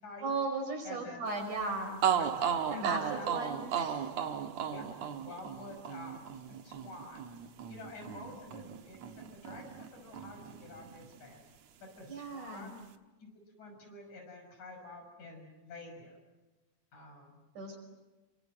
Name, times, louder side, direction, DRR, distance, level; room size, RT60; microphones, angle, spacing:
voice 1, 0.2-2.0 2.7-4.1 12.1-12.7 17.6-17.8, right 3 dB, 80° right, 3 dB, 6.8 m, -36 dB
voice 2, 0.8-1.2 2.2-2.4 2.7-3.5 4.7-7.2 7.7-9.0 9.3-11.4 11.8-12.8 13.2-13.3 13.6-16.2 16.9-17.4, left 2 dB, 70° left, 3 dB, 7.4 m, -49 dB
sound 1, 1.6-1.7 2.0-9.9 10.1-11.3, right 8 dB, 65° right, 2.4 m, -35 dB
27.5 x 24.5 x 7.8 m, 1.2 s
omnidirectional pair, 3.5 m